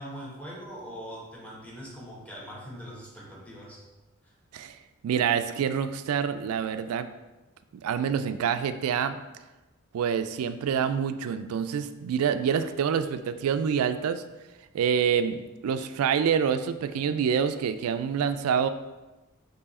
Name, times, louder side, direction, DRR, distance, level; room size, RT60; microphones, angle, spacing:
voice 1, 0.0-3.8, equal, 5° left, -5 dB, 1.1 m, -42 dB
voice 2, 5.0-7.1 7.7-9.2 9.9-14.2 14.7-18.7, right 7 dB, 90° right, 11 dB, 0.3 m, -27 dB
4.7 x 2.8 x 4.1 m, 1.1 s
head